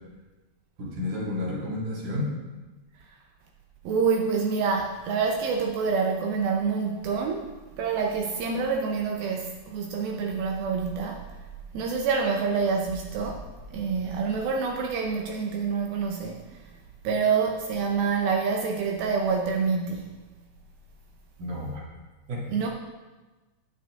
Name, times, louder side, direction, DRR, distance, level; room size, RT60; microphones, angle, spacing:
voice 1, 0.8-2.3 21.4-21.8 22.3-22.4, left 1 dB, 50° right, -5 dB, 3.5 m, -31 dB
voice 2, 3.8-7.5 7.8-11.4 11.7-16.6 17.0-20.1 22.5-22.7, right 5 dB, 75° right, 1 dB, 2.3 m, -27 dB
10.0 x 9.3 x 3.7 m, 1.2 s
omnidirectional pair, 4.9 m